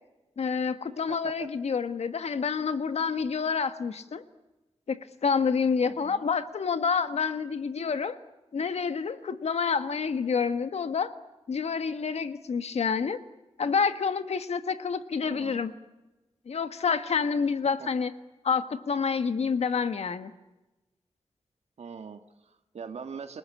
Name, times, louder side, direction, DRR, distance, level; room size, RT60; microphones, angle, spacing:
voice 1, 0.4-4.2 4.9-8.2 8.5-11.1 11.5-13.2 13.6-15.7 16.5-18.1 18.4-20.3, left 5 dB, 75° left, 10 dB, 1.6 m, -28 dB
voice 2, 5.8-6.3 15.3-15.7 17.6-17.9 21.8-23.4, right 6 dB, 80° right, 7 dB, 1.6 m, -42 dB
29.0 x 19.0 x 8.5 m, 1.0 s
wide cardioid pair, 140°, 11 cm